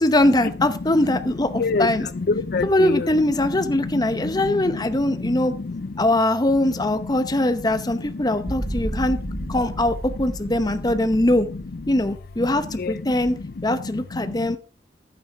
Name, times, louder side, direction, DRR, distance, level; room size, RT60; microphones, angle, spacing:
voice 1, 0.0-2.1 2.6-5.5 6.0-9.2 9.5-11.5 11.9-13.4 13.6-14.6, left 1 dB, 25° left, 0.8 m, -21 dB
voice 2, 1.5-3.1 3.7-6.0 8.4-8.5 8.8-9.6 12.7-13.2 13.6-14.6, left 3 dB, 55° left, 0.5 m, -28 dB
sound 1, 8.5-13.7, right 1 dB, 15° right, 1.0 m, -33 dB
11.5 x 8.8 x 3.4 m
head